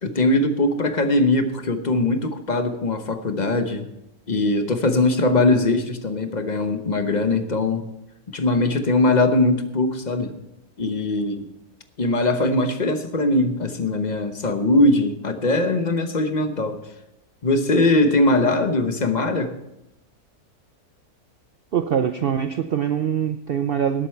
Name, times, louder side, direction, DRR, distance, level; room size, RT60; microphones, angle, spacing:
voice 1, 0.0-3.9 4.3-7.8 8.3-10.3 10.8-11.5 12.0-16.8 17.4-19.5, left 2 dB, 35° left, 7 dB, 1.0 m, -21 dB
voice 2, 21.7-24.1, right 8 dB, 75° right, 9 dB, 0.5 m, -23 dB
19.0 x 8.2 x 4.6 m, 0.88 s
omnidirectional pair, 1.6 m